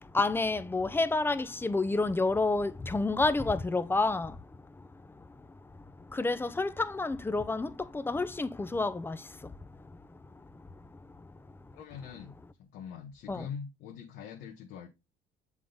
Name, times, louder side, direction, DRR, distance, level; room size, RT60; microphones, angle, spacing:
voice 1, 0.1-4.3 6.2-7.7 8.1-9.2 13.3-13.5, left 3 dB, 15° left, 0.5 m, -29 dB
voice 2, 11.7-14.9, left 7 dB, 80° left, 1.1 m, -43 dB
7.4 x 3.6 x 3.9 m
cardioid pair, 110°, 17 cm